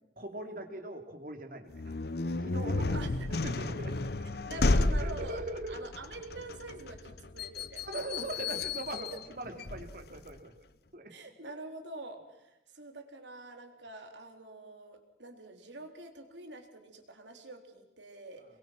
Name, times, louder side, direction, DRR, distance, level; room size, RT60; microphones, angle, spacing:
voice 1, 0.2-2.0 2.3-4.0 4.9-5.8 7.8-10.5 10.9-11.1, right 1 dB, 50° right, 6 dB, 2.8 m, -41 dB
sound 1, 1.7-10.4, left 2 dB, 55° left, 0.8 m, -33 dB
voice 2, 2.9-3.4 4.4-5.4 5.7-8.0 11.1-18.5, right 2 dB, 75° right, 5 dB, 3.8 m, -46 dB
28.0 x 22.5 x 6.1 m, 0.93 s
head